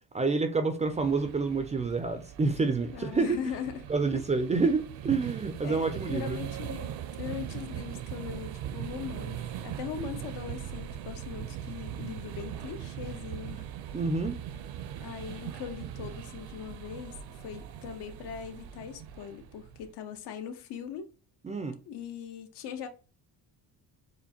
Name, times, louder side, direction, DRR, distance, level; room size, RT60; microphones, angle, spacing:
voice 1, 0.1-3.4 3.9-6.4 13.9-14.4 21.4-21.8, right 4 dB, 20° right, 0.3 m, -28 dB
sound 1, 0.9-19.9, right 10 dB, 70° right, 0.6 m, -40 dB
voice 2, 2.9-3.8 5.6-13.7 15.0-21.1 21.9-22.9, left 8 dB, 80° left, 0.9 m, -40 dB
7.0 x 2.5 x 2.8 m
cardioid pair, 170°, 40 cm